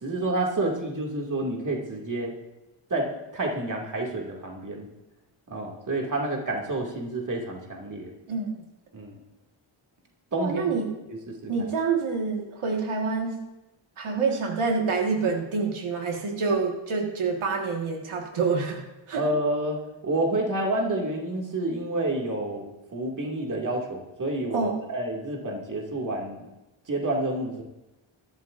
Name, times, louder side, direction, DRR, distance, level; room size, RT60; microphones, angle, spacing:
voice 1, 0.0-2.3 2.9-4.9 5.5-8.1 8.9-9.2 10.3-10.7 11.1-11.7 19.1-19.8 20.0-26.5 26.9-27.6, right 2 dB, 40° right, -1 dB, 2.3 m, -29 dB
voice 2, 10.4-10.9 11.5-13.3 14.0-19.2 24.5-24.8, right 4 dB, 85° right, 1 dB, 1.7 m, -27 dB
22.0 x 12.0 x 2.6 m, 0.98 s
wide cardioid pair, 145°, 48 cm